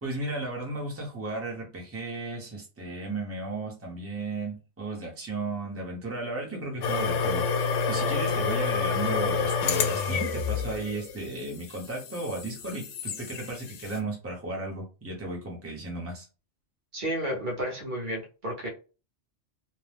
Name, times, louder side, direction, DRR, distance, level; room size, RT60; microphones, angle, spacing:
voice 1, 0.0-16.3, right 2 dB, 15° right, -1 dB, 0.8 m, -35 dB
sound 1, 6.8-14.0, left 5 dB, 90° left, 0.9 m, -29 dB
voice 2, 16.9-18.7, equal, 45° right, -1 dB, 1.0 m, -32 dB
2.7 x 2.1 x 3.4 m, 0.33 s
omnidirectional pair, 1.2 m